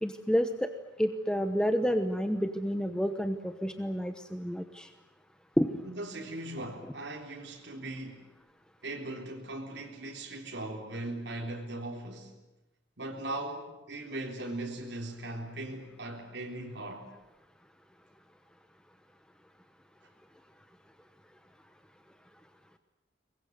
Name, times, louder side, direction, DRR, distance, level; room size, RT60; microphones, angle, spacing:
voice 1, 0.0-0.7 1.0-4.9 5.6-5.8, equal, 5° left, 1.0 m, -29 dB
voice 2, 5.8-8.3 8.8-12.3 13.0-17.1, right 1 dB, 75° right, 3.8 m, -39 dB
24.0 x 21.0 x 9.4 m
head